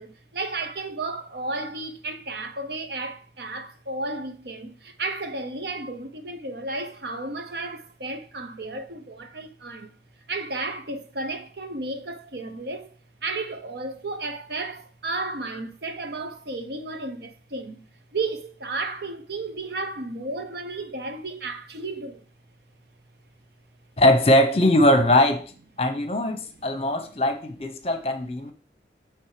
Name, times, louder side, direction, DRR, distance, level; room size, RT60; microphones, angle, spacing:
voice 1, 0.0-9.9 10.3-12.9 13.2-17.8 18.1-22.2, right 2 dB, 70° right, 0.9 m, -33 dB
voice 2, 24.0-25.4 25.8-28.5, left 1 dB, 35° left, 0.8 m, -20 dB
9.0 x 3.5 x 4.9 m
head